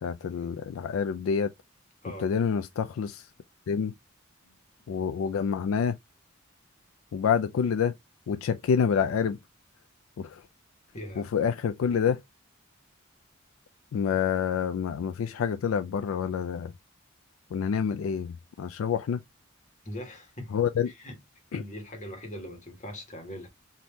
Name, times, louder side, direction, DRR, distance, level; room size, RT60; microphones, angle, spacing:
voice 1, 0.0-1.5 2.2-3.3 3.7-3.9 4.9-6.0 7.1-7.9 8.3-9.4 10.2-10.4 11.2-12.2 13.9-16.7 17.5-19.2 20.5-20.9 21.5-21.6, left 7 dB, 75° left, 0.3 m, -27 dB
voice 2, 10.9-11.3 19.8-20.6 20.9-21.2 21.5-23.5, left 1 dB, 35° left, 1.3 m, -41 dB
3.5 x 2.7 x 2.9 m
head